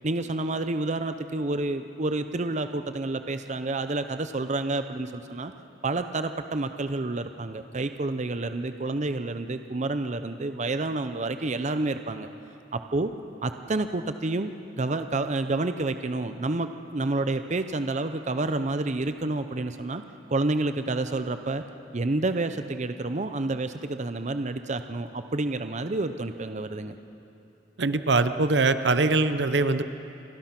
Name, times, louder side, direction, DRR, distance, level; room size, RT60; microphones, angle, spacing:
voice 1, 0.0-5.5 5.8-12.3 12.7-13.1 13.4-20.0 20.3-21.6 21.9-27.0, right 2 dB, 40° right, 9 dB, 0.7 m, -29 dB
voice 2, 27.8-29.8, right 3 dB, 70° right, 11 dB, 0.8 m, -22 dB
29.0 x 23.5 x 6.0 m, 2.9 s
head